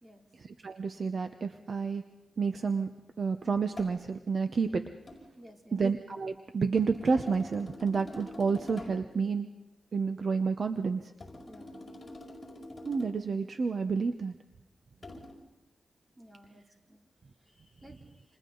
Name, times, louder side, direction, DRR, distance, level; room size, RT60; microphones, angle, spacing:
voice 1, 0.4-2.0 2.4-4.8 5.7-9.5 9.9-11.1 12.9-14.3, right 5 dB, 50° right, 8 dB, 0.9 m, -30 dB
sound 1, 3.8-4.0 5.1-5.3 6.8-9.1 11.2-13.3 15.0-15.3, left 1 dB, 35° left, 5.4 m, -46 dB
voice 2, 5.4-5.8 11.5-11.9 16.2-16.6 16.9-17.0 17.6-18.0, equal, 25° right, 1 dB, 3.1 m, -54 dB
29.5 x 27.5 x 4.0 m, 0.97 s
wide cardioid pair, 110°, 0 cm